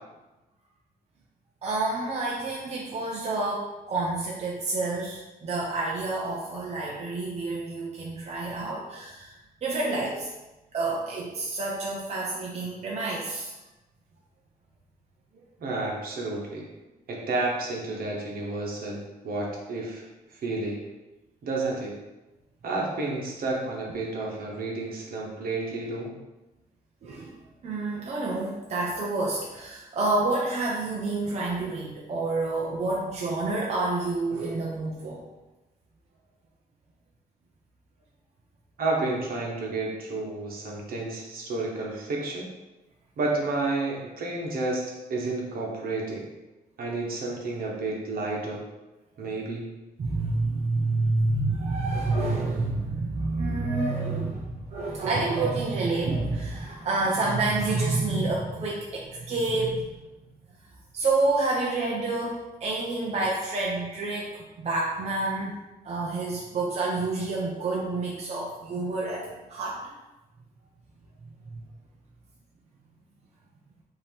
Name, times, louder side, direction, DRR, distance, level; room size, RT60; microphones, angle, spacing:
voice 1, 1.6-9.3 9.6-10.3 10.7-13.5 27.0-27.3 27.6-35.2 50.0-60.0 60.9-65.6 65.8-69.8 71.5-71.6, right 2 dB, 45° right, -3 dB, 0.6 m, -28 dB
voice 2, 15.6-16.7 17.1-20.0 20.4-20.8 21.4-21.9 22.6-26.1 38.8-42.5 43.2-44.8 45.1-46.2 46.8-48.6 49.2-49.7, right 2 dB, 65° right, -2 dB, 1.2 m, -30 dB
5.5 x 2.8 x 3.4 m, 1.1 s
wide cardioid pair, 150°, 16 cm